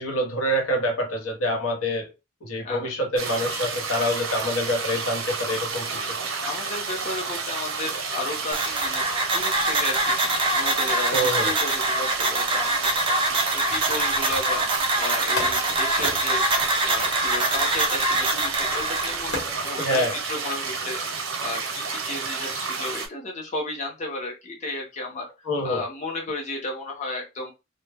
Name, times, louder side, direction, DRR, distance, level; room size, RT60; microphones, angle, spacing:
voice 1, 0.0-2.1 2.4-6.2 11.1-11.5 19.8-20.1 25.5-25.8, equal, 90° left, 0.8 m, -26 dB
sound 1, 3.1-23.1, right 5 dB, 75° right, 0.6 m, -30 dB
voice 2, 6.4-25.3 25.6-27.5, left 2 dB, 35° left, 0.6 m, -34 dB
sound 2, 8.5-19.1, right 2 dB, 25° right, 0.4 m, -24 dB
sound 3, 13.7-14.8 15.4-17.8 19.3-19.7, left 1 dB, 55° left, 0.9 m, -35 dB
2.1 x 2.0 x 3.3 m
head